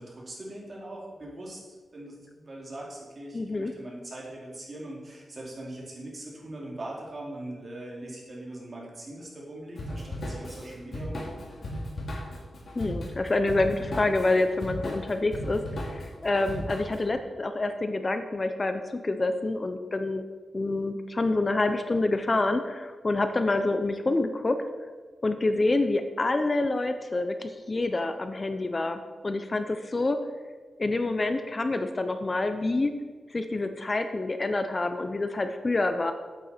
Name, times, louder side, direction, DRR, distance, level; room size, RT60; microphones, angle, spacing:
voice 1, 0.0-1.6 1.9-11.3, right 1 dB, 40° right, -3 dB, 2.9 m, -41 dB
voice 2, 3.3-3.7 12.8-20.2 20.5-24.6 25.2-30.2 30.8-32.9 33.3-36.1, left 2 dB, 35° left, 8 dB, 0.6 m, -27 dB
Drum kit / Drum, 9.7-17.1, equal, 60° left, 2.8 m, -36 dB
8.9 x 8.3 x 4.4 m, 1.4 s
cardioid pair, 90°, 0 cm